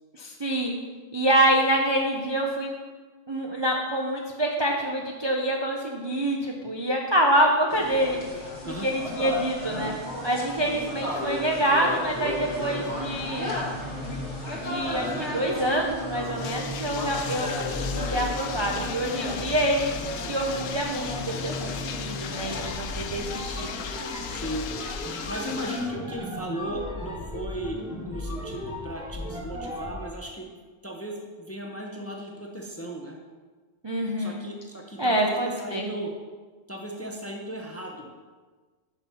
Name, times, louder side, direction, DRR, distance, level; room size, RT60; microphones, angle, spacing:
voice 1, 0.1-0.7 1.1-2.7 3.3-9.9 10.2-13.5 14.5-23.8 33.8-34.4 35.0-35.9, right 1 dB, 30° right, 0 dB, 0.5 m, -26 dB
sound 1, 7.7-22.7, left 1 dB, 60° left, 1.6 m, -33 dB
Bathtub (filling or washing), 16.2-26.0, left 7 dB, 80° left, 1.0 m, -37 dB
sound 2, 22.4-30.2, left 1 dB, 5° right, 1.0 m, -36 dB
voice 2, 24.3-24.7 25.3-27.8 28.0-30.6 30.8-33.2 34.2-36.1 36.7-38.1, right 1 dB, 15° left, 0 dB, 0.6 m, -36 dB
6.0 x 5.7 x 5.5 m, 1.4 s
omnidirectional pair, 1.3 m